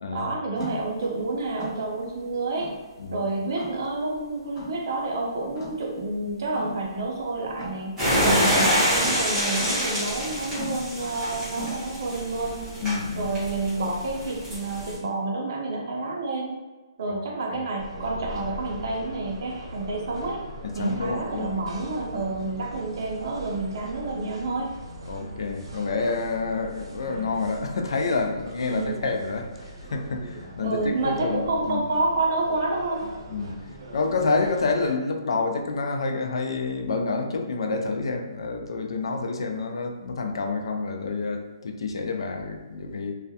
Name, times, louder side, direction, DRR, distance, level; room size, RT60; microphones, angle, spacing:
voice 1, 0.1-2.7 3.1-8.0 8.2-12.6 13.2-16.5 17.0-20.4 20.7-24.7 28.7-29.0 30.6-33.0, right 2 dB, 45° right, -1 dB, 0.5 m, -29 dB
sound 1, 0.5-11.7, left 1 dB, 55° left, 0.9 m, -41 dB
sound 2, 8.0-15.0, equal, 5° right, 0.6 m, -26 dB
voice 2, 8.2-8.5 12.8-13.3 17.1-17.2 17.5-17.6 20.6-21.6 25.1-31.8 33.3-33.5 33.9-43.1, left 3 dB, 70° left, 4 dB, 0.4 m, -28 dB
sound 3, 17.8-34.9, right 1 dB, 85° right, 0.7 m, -41 dB
2.3 x 2.0 x 2.7 m, 1.2 s
hypercardioid pair, 175°, 3 cm